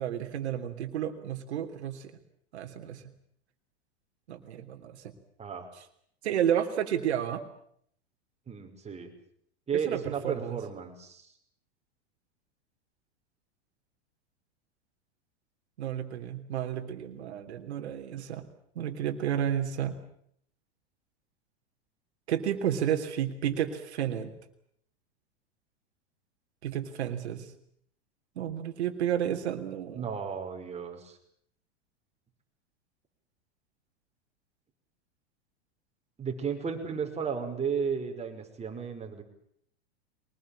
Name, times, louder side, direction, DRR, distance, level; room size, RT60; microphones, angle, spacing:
voice 1, 0.0-2.1 2.5-3.0 4.3-5.0 6.2-7.4 9.9-10.6 15.8-18.4 18.7-20.0 22.3-24.3 26.6-27.5 28.3-30.1, right 10 dB, 75° right, 6 dB, 3.2 m, -31 dB
voice 2, 8.5-9.1 9.7-11.2 29.9-31.2 36.2-39.2, right 6 dB, 20° right, 4 dB, 5.6 m, -34 dB
23.5 x 20.5 x 8.8 m, 0.67 s
hypercardioid pair, 110°, 33 cm